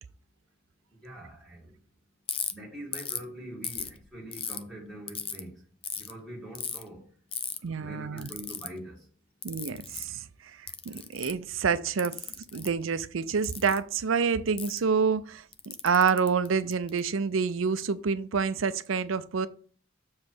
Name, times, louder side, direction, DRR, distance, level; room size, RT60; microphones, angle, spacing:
voice 1, 0.9-1.7 2.5-5.6 5.9-7.1 7.7-9.1, right 1 dB, ahead, 1.9 m, -44 dB
Ratchet pawl, 2.3-2.5 2.9-3.2 3.6-4.6 5.1-5.4 5.8-6.1 6.5-6.8 7.3-7.6 8.2-8.7 9.4-10.1 10.7-11.4 12.0-12.7 13.4-13.8 14.6-14.8 15.5-17.0, left 8 dB, 30° left, 0.5 m, -35 dB
voice 2, 7.6-8.3 9.4-12.2 12.5-19.5, right 5 dB, 75° right, 0.5 m, -28 dB
7.1 x 3.2 x 6.2 m
head